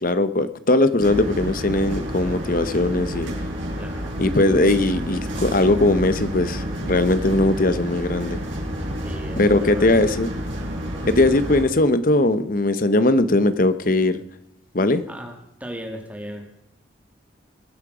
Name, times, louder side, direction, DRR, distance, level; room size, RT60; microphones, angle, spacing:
voice 1, 0.0-3.3 4.2-8.4 9.4-10.3 11.1-14.2 14.7-15.0, left 2 dB, 45° left, 13 dB, 1.0 m, -19 dB
sound 1, 1.0-11.6, equal, 80° right, 5.6 m, -29 dB
voice 2, 3.8-4.2 9.0-9.9 15.1-16.5, equal, 10° right, 3 dB, 2.0 m, -37 dB
22.5 x 8.9 x 5.0 m, 0.83 s
head